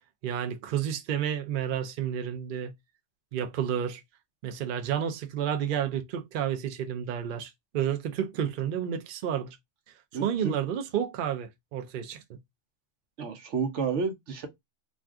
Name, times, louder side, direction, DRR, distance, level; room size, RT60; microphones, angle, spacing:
voice 1, 0.2-2.7 3.3-4.0 4.4-9.6 10.2-12.2, right 9 dB, 60° right, 0.6 m, -30 dB
voice 2, 10.1-10.6 13.2-14.5, right 5 dB, 80° right, 1.0 m, -30 dB
2.5 x 2.3 x 3.4 m
omnidirectional pair, 1.2 m